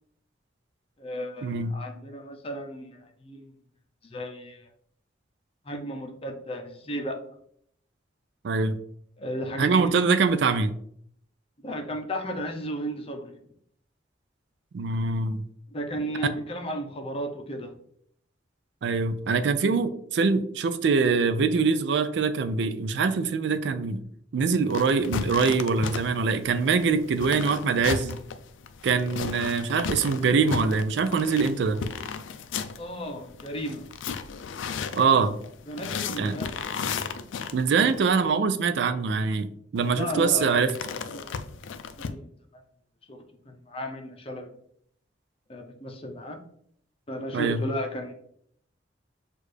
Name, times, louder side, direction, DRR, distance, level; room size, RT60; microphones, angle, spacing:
voice 1, 1.0-3.6 4.0-4.7 5.6-7.2 9.2-9.9 11.6-13.3 15.7-17.7 32.8-33.8 35.7-36.5 39.9-40.6 41.1-41.4 42.0-42.3 43.1-43.2 43.4-44.5 45.5-46.4 47.1-48.1, equal, 30° left, 2 dB, 0.6 m, -34 dB
voice 2, 8.4-8.8 9.6-10.7 14.7-15.4 18.8-24.0 24.3-28.2 28.8-31.8 34.9-35.3 36.2-36.4 37.5-40.7 47.3-47.6, right 5 dB, 65° right, 11 dB, 0.4 m, -24 dB
sound 1, 24.7-38.1 39.8-42.1, left 6 dB, 80° left, 0.4 m, -35 dB
6.3 x 2.5 x 3.3 m, 0.67 s
head